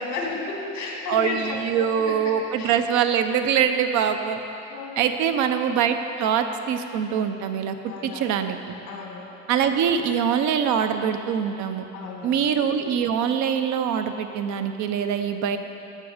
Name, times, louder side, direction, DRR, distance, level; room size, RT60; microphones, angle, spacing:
voice 1, 0.0-2.7 4.7-5.1 7.8-8.3 8.9-9.2 11.9-12.4, left 3 dB, 65° left, -1 dB, 2.2 m, -33 dB
voice 2, 1.1-4.4 5.0-7.8 8.0-8.7 9.5-11.9 12.2-15.6, right 8 dB, 75° right, 8 dB, 0.7 m, -23 dB
14.0 x 6.4 x 5.0 m, 2.9 s
cardioid pair, 170°, 29 cm